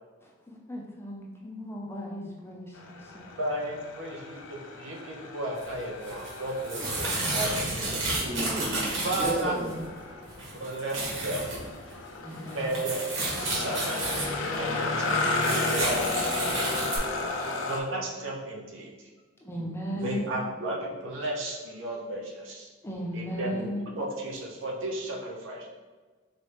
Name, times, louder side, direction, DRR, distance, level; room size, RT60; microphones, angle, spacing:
voice 1, 0.2-3.3 6.8-7.7 8.9-9.8 12.2-12.8 19.4-20.4 22.8-23.9, equal, 10° left, -2 dB, 0.5 m, -37 dB
sound 1, 2.7-17.8, left 3 dB, 90° left, 0.5 m, -34 dB
voice 2, 3.4-8.0 9.0-9.6 10.6-11.4 12.5-13.0 13.3-14.3 14.6-16.1 17.7-18.9 20.0-22.7 23.1-23.5 23.9-25.7, right 1 dB, 90° right, -1 dB, 0.7 m, -34 dB
sound 2, 5.6-5.7 6.1-9.8 10.2-11.6 11.9-12.0 12.3-14.6 15.1-17.0, right 2 dB, 75° right, 1.3 m, -31 dB
voice 3, 8.2-9.8 19.9-20.3 23.5-23.7, right 1 dB, 45° right, -4 dB, 1.0 m, -34 dB
4.0 x 3.1 x 3.2 m, 1.4 s
head